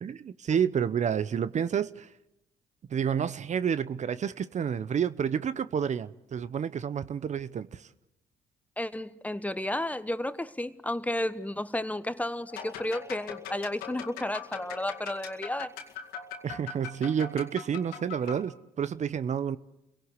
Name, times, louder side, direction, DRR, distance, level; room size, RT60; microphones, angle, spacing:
voice 1, 0.0-2.1 2.9-7.9 16.4-19.6, right 8 dB, 50° right, 0.8 m, -29 dB
voice 2, 8.8-15.7, left 1 dB, 10° left, 1.2 m, -32 dB
sound 1, 12.5-18.4, left 8 dB, 90° left, 2.2 m, -41 dB
29.0 x 17.5 x 8.1 m
supercardioid pair, 55°, 15 cm